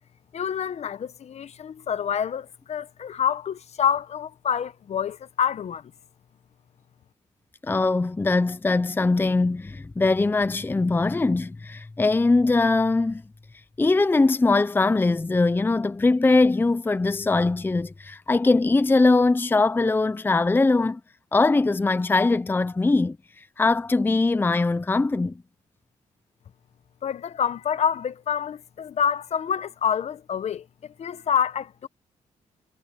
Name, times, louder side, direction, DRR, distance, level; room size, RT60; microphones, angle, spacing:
voice 1, 0.3-5.9 27.0-31.9, left 8 dB, 55° left, 1.1 m, -27 dB
voice 2, 7.6-13.2 13.8-21.0 21.3-25.4, left 3 dB, 15° left, 0.6 m, -21 dB
cardioid pair, 90°, 13 cm